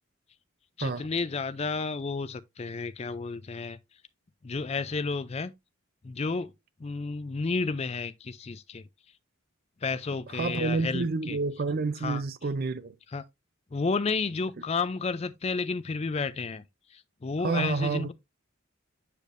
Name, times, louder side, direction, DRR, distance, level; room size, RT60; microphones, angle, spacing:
voice 1, 0.8-3.8 4.4-5.5 6.0-6.5 6.8-8.8 9.8-11.4 12.0-12.2 13.1-13.2 13.7-16.6 16.9-18.1, left 4 dB, 30° left, 0.4 m, -31 dB
voice 2, 10.3-13.0 17.4-18.1, right 4 dB, 40° right, 0.4 m, -29 dB
8.3 x 5.1 x 2.5 m
head